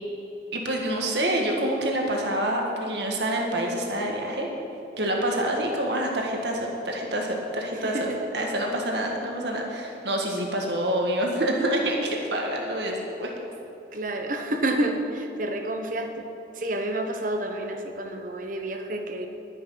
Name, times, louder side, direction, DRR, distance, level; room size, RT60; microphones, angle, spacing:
voice 1, 0.5-4.5 5.0-13.3, right 1 dB, 65° right, 0 dB, 1.7 m, -27 dB
voice 2, 7.7-8.2 13.9-16.3 16.5-19.3, right 1 dB, 45° right, 4 dB, 1.1 m, -29 dB
11.5 x 10.0 x 5.7 m, 2.8 s
head